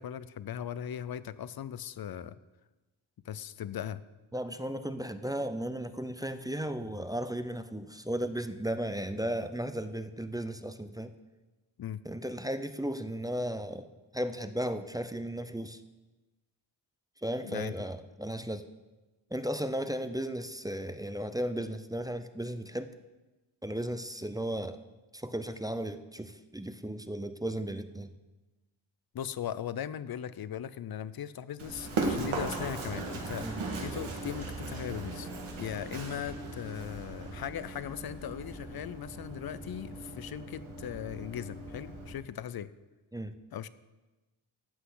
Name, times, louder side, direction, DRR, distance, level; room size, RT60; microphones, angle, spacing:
voice 1, 0.0-2.4 3.2-4.0 11.8-12.0 17.4-17.9 29.1-35.3 35.6-42.7 43.5-43.7, left 10 dB, 50° left, 16 dB, 0.5 m, -39 dB
voice 2, 4.3-11.1 12.1-13.9 14.1-15.8 17.2-18.7 19.3-22.9 23.6-24.8 25.1-28.1 33.4-33.6 36.3-36.4 43.1-43.3, right 1 dB, 10° right, 10 dB, 0.4 m, -35 dB
Run, 31.6-42.1, right 3 dB, 80° right, 1.8 m, -38 dB
14.0 x 8.1 x 3.9 m, 1.1 s
wide cardioid pair, 95°, 48 cm